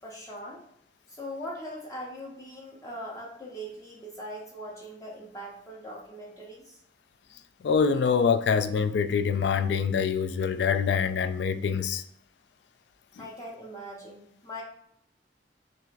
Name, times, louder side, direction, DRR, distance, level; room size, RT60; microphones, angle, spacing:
voice 1, 0.0-0.6 1.1-6.8 13.2-14.6, equal, 20° left, 0.6 m, -41 dB
voice 2, 7.6-12.0 13.2-13.3, left 6 dB, 70° left, 0.3 m, -25 dB
6.0 x 2.4 x 2.5 m
head